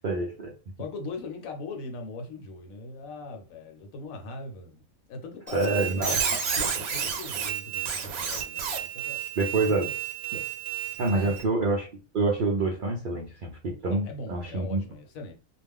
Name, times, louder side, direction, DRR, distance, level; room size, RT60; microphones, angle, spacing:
voice 1, 0.0-0.5 5.5-6.1 9.4-9.9 10.3-10.4 11.0-11.9 12.1-14.8, right 3 dB, 65° right, 0.5 m, -27 dB
voice 2, 0.8-4.8 5.1-9.2 9.6-9.7 11.1-11.5 13.9-15.3, left 3 dB, 75° left, 1.0 m, -40 dB
Squeak, 5.5-11.4, right 7 dB, 85° right, 1.0 m, -31 dB
2.4 x 2.1 x 3.4 m
omnidirectional pair, 1.5 m